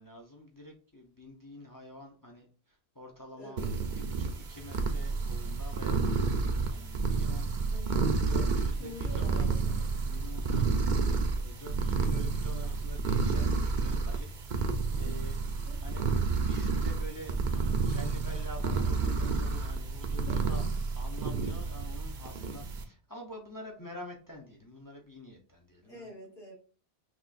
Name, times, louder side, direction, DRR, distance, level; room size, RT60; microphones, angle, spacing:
voice 1, 0.0-3.6 4.0-7.5 8.1-10.8 11.3-15.4 15.8-16.0 16.4-20.6 20.9-26.0, left 1 dB, 20° left, 1 dB, 0.6 m, -47 dB
voice 2, 3.4-3.7 7.7-8.1 8.5-9.8 14.9-15.3 15.6-16.0 20.2-20.7 25.8-26.5, equal, 65° left, -3 dB, 2.1 m, -47 dB
sound 1, 3.6-22.8, right 4 dB, 55° right, 0.7 m, -30 dB
6.1 x 2.4 x 2.5 m, 0.39 s
omnidirectional pair, 1.1 m